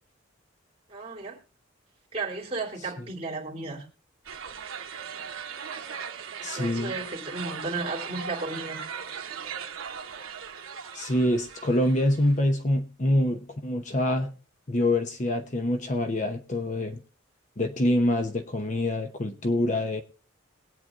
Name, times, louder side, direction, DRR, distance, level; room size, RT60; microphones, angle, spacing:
voice 1, 0.9-1.4 2.1-3.8 6.4-8.8, right 3 dB, 30° right, -3 dB, 3.1 m, -34 dB
sound 1, 4.2-12.4, right 7 dB, 90° right, 1.0 m, -38 dB
voice 2, 6.4-6.9 10.9-14.3 14.7-17.0 17.6-20.0, left 1 dB, 35° left, 6 dB, 0.8 m, -25 dB
22.0 x 9.1 x 2.5 m, 0.36 s
head